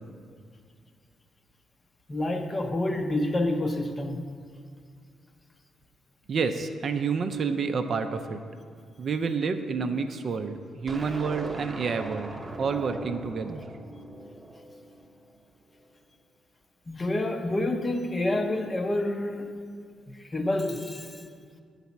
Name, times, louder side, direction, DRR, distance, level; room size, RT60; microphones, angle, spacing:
voice 1, 2.1-4.2 16.9-19.5 20.1-21.3, left 1 dB, 25° left, 6 dB, 0.6 m, -28 dB
voice 2, 6.3-8.4 9.0-12.3 12.6-13.6, right 5 dB, 50° right, 7 dB, 0.4 m, -29 dB
sound 1, 10.9-15.3, right 1 dB, 20° right, 0.9 m, -39 dB
9.5 x 4.1 x 7.0 m, 2.1 s
cardioid pair, 115°, 0 cm